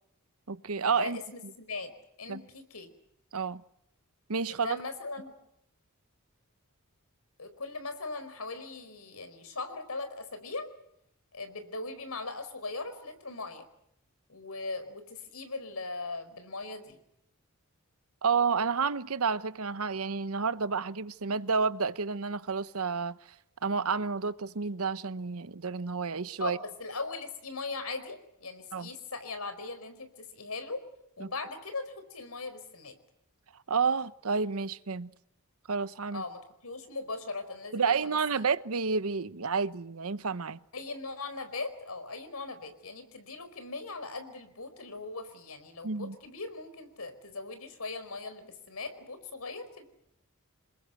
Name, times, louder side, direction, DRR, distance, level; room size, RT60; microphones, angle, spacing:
voice 1, 0.5-1.2 2.3-2.4 3.3-3.6 4.3-4.8 18.2-23.2 23.6-26.6 28.7-28.9 31.2-31.3 33.7-35.1 35.7-36.2 37.7-40.6 45.8-46.2, right 5 dB, 75° right, 0.9 m, -30 dB
voice 2, 1.0-1.9 2.2-2.9 4.5-5.3 7.4-10.7 11.3-13.6 14.3-17.0 26.4-30.8 31.2-32.9 36.1-38.2 40.7-49.9, left 3 dB, 85° left, 4.7 m, -39 dB
27.5 x 21.0 x 7.8 m
head